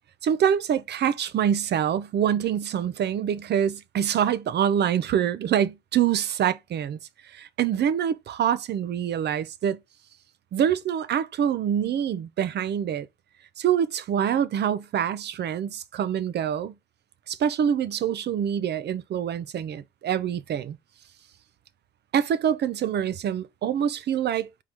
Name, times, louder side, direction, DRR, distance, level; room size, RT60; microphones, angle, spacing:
voice 1, 0.2-7.0 7.3-9.8 10.5-13.1 13.6-16.7 17.3-20.8 22.1-24.5, right 9 dB, 60° right, 0.6 m, -25 dB
4.8 x 3.7 x 2.9 m
cardioid pair, 90°, 20 cm